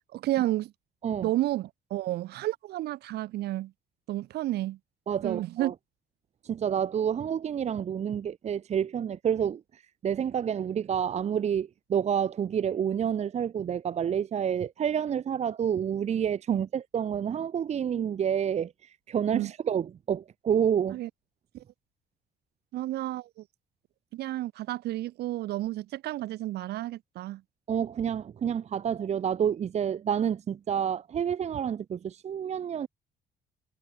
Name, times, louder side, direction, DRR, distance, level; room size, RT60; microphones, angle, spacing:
voice 1, 0.1-0.7 1.2-3.7 4.1-4.8 5.2-5.7 16.5-16.6 19.3-19.5 20.9-21.1 22.7-23.4 24.1-27.4, right 15 dB, 75° right, 3.1 m, -31 dB
voice 2, 5.1-5.7 6.4-18.7 19.1-21.0 27.7-32.9, right 8 dB, 40° right, 1.0 m, -29 dB
cardioid pair, 110°, 17 cm